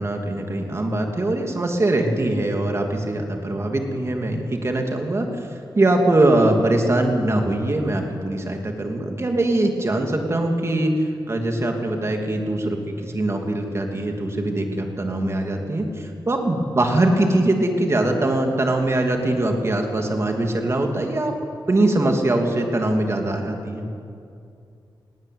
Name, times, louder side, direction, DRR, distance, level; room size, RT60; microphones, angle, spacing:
voice 1, 0.0-21.3 21.7-23.9, right 1 dB, 35° right, 3 dB, 2.9 m, -22 dB
19.5 x 18.0 x 9.6 m, 2.5 s
wide cardioid pair, 125°, 9 cm